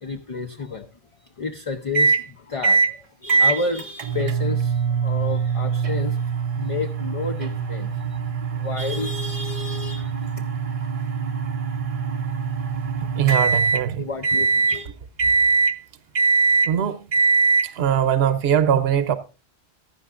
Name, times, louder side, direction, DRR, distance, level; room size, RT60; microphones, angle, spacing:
voice 1, 0.0-0.9 1.2-8.2 8.5-10.5 14.0-14.9, left 4 dB, 35° left, 0.7 m, -31 dB
sound 1, 1.9-2.2 2.6-2.9 3.3-13.8 14.2-14.8 15.2-15.8 16.2-16.7 17.1-17.7, right 4 dB, 40° right, 0.6 m, -22 dB
voice 2, 13.2-14.1 16.6-17.1 17.6-19.2, right 9 dB, 75° right, 0.9 m, -21 dB
15.0 x 11.0 x 2.4 m
omnidirectional pair, 1.1 m